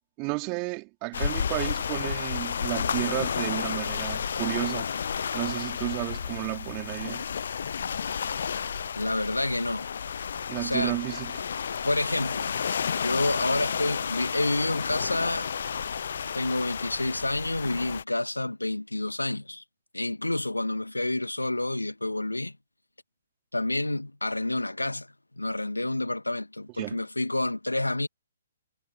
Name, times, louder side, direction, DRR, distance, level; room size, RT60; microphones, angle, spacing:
voice 1, 0.2-4.9 5.3-7.2 10.5-11.3 26.8-27.0, right 34 dB, 30° right, 3.4 m, -32 dB
sound 1, 1.1-18.0, left 7 dB, 55° left, 0.7 m, -31 dB
voice 2, 9.0-9.9 10.6-11.0 11.8-12.6 12.9-15.5 16.3-19.6 19.9-22.5 23.5-25.1 25.4-28.1, left 2 dB, 85° left, 1.8 m, -29 dB
figure-of-eight pair, 125°, 0 cm